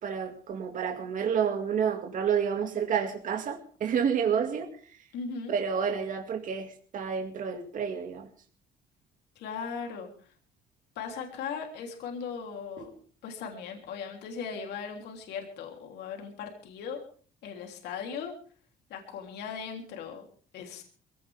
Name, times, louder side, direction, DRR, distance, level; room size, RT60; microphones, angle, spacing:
voice 1, 0.0-5.1 5.5-8.3 12.8-12.9, right 7 dB, 50° right, 3 dB, 2.3 m, -30 dB
voice 2, 5.1-5.5 9.3-10.3 10.9-12.9 13.2-17.0 17.4-18.3 18.9-20.3 20.5-20.8, left 6 dB, 80° left, 2 dB, 3.4 m, -38 dB
22.5 x 16.5 x 3.6 m, 0.43 s
cardioid pair, 110°, 17 cm